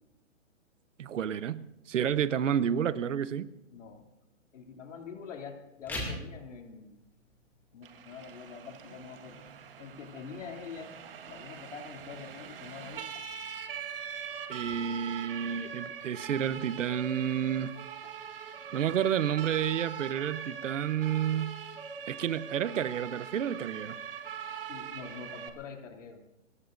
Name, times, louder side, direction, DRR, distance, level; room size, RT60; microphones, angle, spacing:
voice 1, 1.0-3.5 14.5-17.7 18.7-21.6 22.1-24.0, right 9 dB, 70° right, 15 dB, 1.0 m, -30 dB
voice 2, 3.7-4.1 4.5-7.0 7.7-9.4 9.8-13.2 24.7-26.2, left 6 dB, 65° left, 2 dB, 3.0 m, -45 dB
sound 1, 5.7-16.7, left 1 dB, 5° left, 2.4 m, -48 dB
Siren, 7.8-25.5, right 7 dB, 45° right, 1.5 m, -42 dB
24.0 x 20.0 x 2.6 m, 0.92 s
hypercardioid pair, 170°, 39 cm